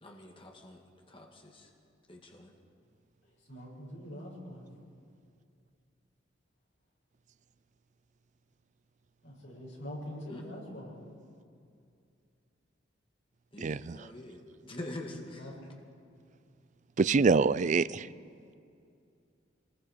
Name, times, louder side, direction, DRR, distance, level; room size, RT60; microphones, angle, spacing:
voice 1, 0.0-0.8 1.1-1.7 2.1-2.5 10.3-10.4 13.5-15.5, left 1 dB, 30° left, 2 dB, 1.8 m, -45 dB
voice 2, 3.5-4.6 9.2-11.0 15.1-15.5, equal, 70° left, -3 dB, 6.7 m, -44 dB
voice 3, 13.6-14.0 17.0-18.1, right 4 dB, 40° right, 17 dB, 0.4 m, -25 dB
25.0 x 20.5 x 5.1 m, 2.4 s
head